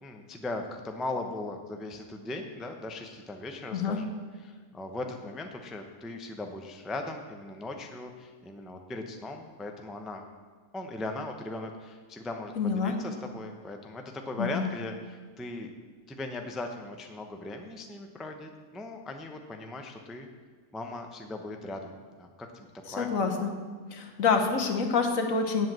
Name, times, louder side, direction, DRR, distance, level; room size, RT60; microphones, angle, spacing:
voice 1, 0.0-4.1 4.4-10.2 10.7-15.7 16.1-20.3 20.7-21.9 22.2-23.1, left 2 dB, ahead, 4 dB, 0.5 m, -38 dB
voice 2, 12.6-12.9 14.4-14.6 23.0-23.5 23.9-25.7, left 5 dB, 70° left, 5 dB, 1.5 m, -27 dB
8.2 x 7.8 x 7.5 m, 1.6 s
omnidirectional pair, 1.5 m